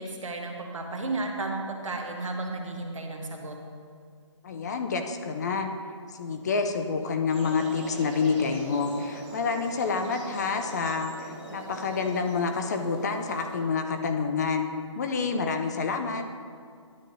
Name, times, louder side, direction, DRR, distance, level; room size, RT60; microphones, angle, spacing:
voice 1, 0.0-3.6, right 2 dB, 80° right, 2 dB, 1.3 m, -33 dB
voice 2, 4.4-5.7 6.1-14.7 15.0-16.3, left 5 dB, 35° left, 5 dB, 0.5 m, -28 dB
sound 1, 7.3-13.6, right 2 dB, 20° right, 1.4 m, -42 dB
10.0 x 8.5 x 2.6 m, 2.1 s
hypercardioid pair, 155°, 16 cm